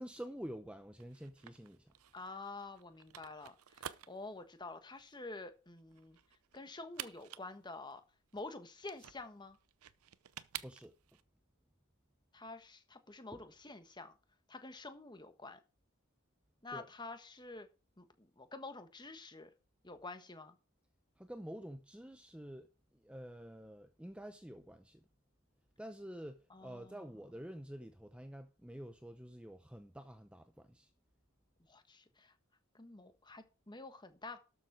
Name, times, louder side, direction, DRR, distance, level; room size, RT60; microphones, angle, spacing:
voice 1, 0.0-1.9 10.6-10.9 13.3-13.4 16.7-16.9 21.2-22.7 23.0-25.0 25.8-30.9, equal, 5° right, 0.6 m, -48 dB
sound 1, 1.0-11.2, right 10 dB, 75° right, 0.7 m, -51 dB
voice 2, 2.1-6.2 6.5-8.0 8.3-9.6 12.3-14.1 14.5-15.6 16.6-17.7 18.0-19.5 19.8-20.6 26.5-27.0 31.7-32.3 32.7-34.4, left 3 dB, 20° left, 1.3 m, -48 dB
12.5 x 7.1 x 4.8 m
head